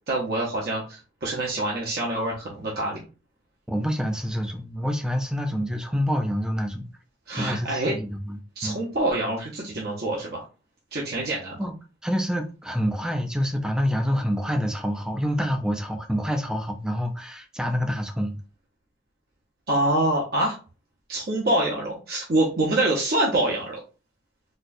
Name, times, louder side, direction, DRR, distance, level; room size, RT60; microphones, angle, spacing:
voice 1, 0.1-3.0 7.3-8.0 8.6-10.4 10.9-11.6 19.7-20.6 21.1-23.8, right 1 dB, 55° right, 0.8 m, -25 dB
voice 2, 3.7-6.9 7.4-8.8 11.6-11.7 12.0-18.4, equal, 5° right, 0.4 m, -27 dB
4.1 x 2.2 x 2.6 m
head